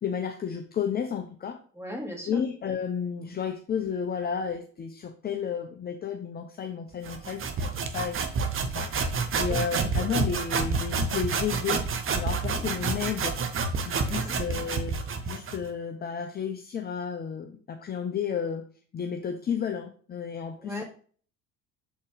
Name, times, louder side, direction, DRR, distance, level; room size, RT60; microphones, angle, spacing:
voice 1, 0.0-1.6 2.3-7.7 7.9-8.3 8.6-11.8 12.1-13.5 13.8-15.0 15.2-18.6 18.9-20.8, left 7 dB, 25° left, 5 dB, 0.7 m, -32 dB
voice 2, 1.7-2.4 9.5-9.9 12.4-12.6 13.9-14.4 20.6-20.8, left 1 dB, 5° right, -1 dB, 2.7 m, -38 dB
sound 1, 7.0-15.7, right 4 dB, 35° right, 1.0 m, -29 dB
7.0 x 4.3 x 3.4 m, 0.44 s
hypercardioid pair, 60°, 36 cm